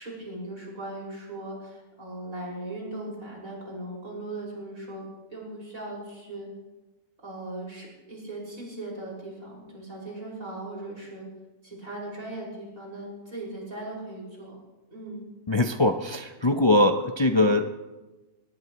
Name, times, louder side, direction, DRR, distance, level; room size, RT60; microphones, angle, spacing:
voice 1, 0.0-5.0 5.3-6.5 7.2-11.3 11.6-14.6 14.9-15.2, right 2 dB, 90° right, -4 dB, 6.1 m, -38 dB
voice 2, 15.5-17.7, left 1 dB, 35° left, 6 dB, 0.4 m, -22 dB
19.0 x 19.0 x 3.1 m, 1.1 s
omnidirectional pair, 1.4 m